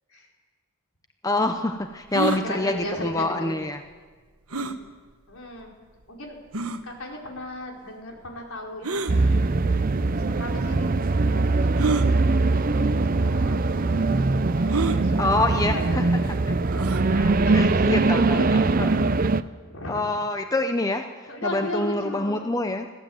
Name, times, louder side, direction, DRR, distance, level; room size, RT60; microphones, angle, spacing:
voice 1, 1.2-3.8 15.2-16.1 17.5-18.9 19.9-22.9, left 2 dB, 15° left, 6 dB, 0.7 m, -26 dB
sound 1, 2.1-2.4 4.5-4.8 5.6-5.7 6.5-6.8 8.8-9.1 10.2-10.3 11.7-12.1 13.0-13.1 13.4-13.5 14.7-15.0 16.7-17.1, right 4 dB, 75° right, 1.3 m, -27 dB
voice 2, 2.2-3.7 4.5-4.8 5.3-5.7 6.1-6.4 6.8-9.5 10.1-11.0 11.3-14.2 14.5-16.1 17.1-18.6 19.2-20.1 21.3-22.4, left 1 dB, 65° left, 0 dB, 4.6 m, -37 dB
sound 2, 9.1-19.4, right 3 dB, 40° right, 0.6 m, -22 dB
22.0 x 15.5 x 7.9 m, 1.5 s
head